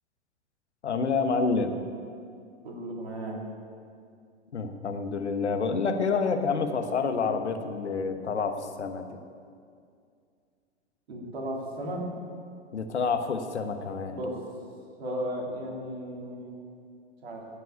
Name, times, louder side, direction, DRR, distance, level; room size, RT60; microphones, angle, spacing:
voice 1, 0.8-1.7 4.5-9.2 12.7-14.2, left 4 dB, 75° left, 7 dB, 1.1 m, -28 dB
voice 2, 2.6-3.4 11.1-12.1 14.1-14.4 15.0-16.6 17.2-17.4, right 1 dB, 65° right, -1 dB, 3.1 m, -35 dB
14.5 x 5.8 x 8.4 m, 2.3 s
figure-of-eight pair, 100°, 34 cm